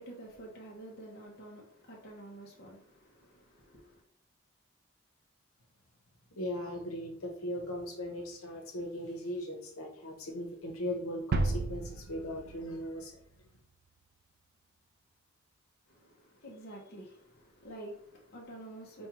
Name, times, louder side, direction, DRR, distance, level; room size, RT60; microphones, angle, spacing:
voice 1, 0.0-4.0 15.9-19.1, right 1 dB, 45° left, 0.8 m, -49 dB
voice 2, 6.4-13.2, left 1 dB, 85° left, 0.9 m, -38 dB
sound 1, 11.3-13.4, right 2 dB, 50° right, 0.3 m, -33 dB
5.2 x 2.3 x 2.9 m
head